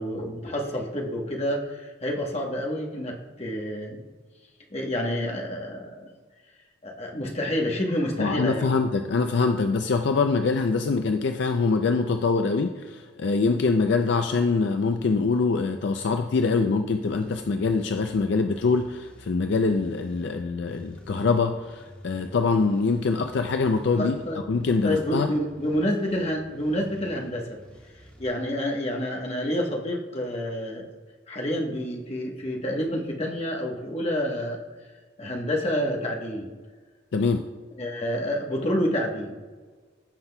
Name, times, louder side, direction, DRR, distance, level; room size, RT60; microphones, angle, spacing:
voice 1, 0.0-4.0 4.7-6.1 6.8-8.7 23.9-24.4 24.8-27.6 28.2-30.9 31.3-34.6 35.2-36.5 37.8-39.4, equal, 30° left, 0 dB, 1.1 m, -28 dB
voice 2, 8.2-24.2 24.5-25.3 37.1-37.5, left 4 dB, 60° left, 6 dB, 0.4 m, -24 dB
sound 1, 17.1-28.3, equal, 5° left, 1.4 m, -49 dB
15.0 x 5.8 x 2.2 m, 1.4 s
head